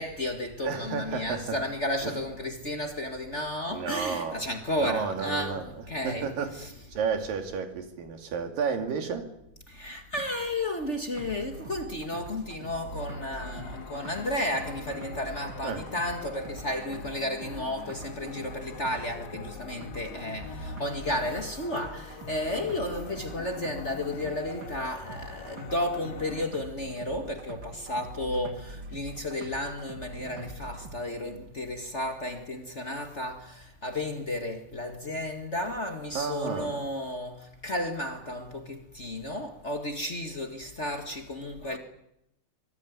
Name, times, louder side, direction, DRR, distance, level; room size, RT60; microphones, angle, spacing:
voice 1, 0.0-6.3 6.6-6.7 9.7-41.8, left 1 dB, 35° left, 1.1 m, -33 dB
voice 2, 0.6-1.6 2.0-2.2 3.7-4.5 4.8-9.3 15.6-15.9 36.1-36.8, right 6 dB, 65° right, 4.1 m, -32 dB
sound 1, 11.1-31.0, right 2 dB, 40° right, 1.8 m, -44 dB
sound 2, 12.8-26.4, left 8 dB, 85° left, 3.6 m, -45 dB
25.0 x 19.5 x 9.5 m
omnidirectional pair, 4.4 m